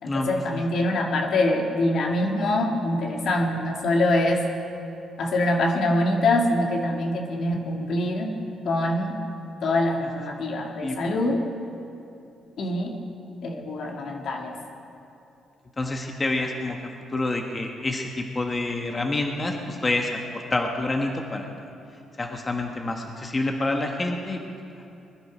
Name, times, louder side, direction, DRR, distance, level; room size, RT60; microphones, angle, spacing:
voice 1, 0.0-4.4 5.2-8.3 8.6-9.2 9.6-11.4 12.6-12.9 13.4-14.6, left 1 dB, 65° left, 1 dB, 1.9 m, -24 dB
voice 2, 15.8-16.8 17.1-21.5 22.2-24.4, left 2 dB, 25° left, 2 dB, 1.4 m, -27 dB
21.0 x 10.5 x 5.1 m, 2.8 s
cardioid pair, 90°, 0 cm